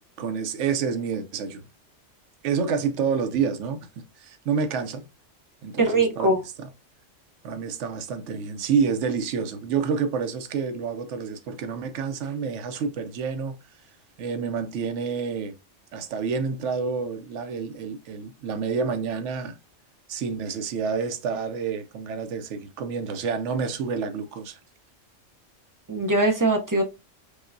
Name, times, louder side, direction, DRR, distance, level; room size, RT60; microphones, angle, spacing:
voice 1, 0.0-1.6 2.4-5.1 5.6-6.3 6.6-6.7 7.4-13.5 14.2-15.5 15.9-19.6 20.1-24.6, right 6 dB, 75° right, 0.9 m, -28 dB
voice 2, 5.8-6.4 25.9-26.8, right 2 dB, 30° right, 0.4 m, -21 dB
5.0 x 2.1 x 2.5 m
omnidirectional pair, 1.3 m